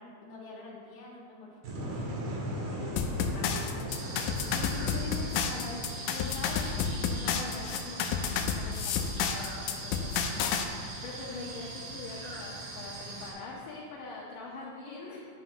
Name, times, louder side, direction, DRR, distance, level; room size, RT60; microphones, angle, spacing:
voice 1, 0.0-2.0 2.6-4.1, left 2 dB, 55° left, -6 dB, 3.1 m, -47 dB
sound 1, 1.6-7.5, equal, 75° right, 3.1 m, -39 dB
sound 2, 3.0-10.7, left 6 dB, 85° left, 1.7 m, -31 dB
sound 3, 3.9-13.3, right 2 dB, 55° right, 1.7 m, -42 dB
voice 2, 4.5-15.2, left 3 dB, 70° left, -5 dB, 2.5 m, -43 dB
10.0 x 9.1 x 2.9 m, 2.4 s
omnidirectional pair, 4.2 m